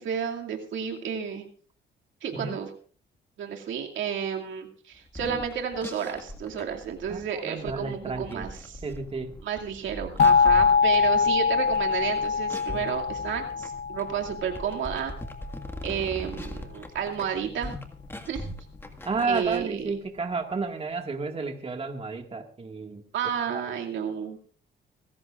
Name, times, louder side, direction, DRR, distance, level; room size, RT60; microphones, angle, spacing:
voice 1, 0.0-1.5 2.2-2.7 3.4-8.8 9.4-15.1 15.8-17.7 18.3-18.4 19.2-19.8 23.1-24.4, right 8 dB, 75° right, 1 dB, 2.4 m, -31 dB
sound 1, 5.0-19.6, left 1 dB, 10° left, 1.9 m, -41 dB
voice 2, 7.1-8.5 8.8-9.3 19.1-23.0 23.5-23.6, right 4 dB, 30° right, 4 dB, 1.9 m, -31 dB
sound 2, 10.2-14.9, left 5 dB, 65° left, 0.9 m, -23 dB
25.5 x 14.0 x 2.5 m, 0.44 s
cardioid pair, 90°, 20 cm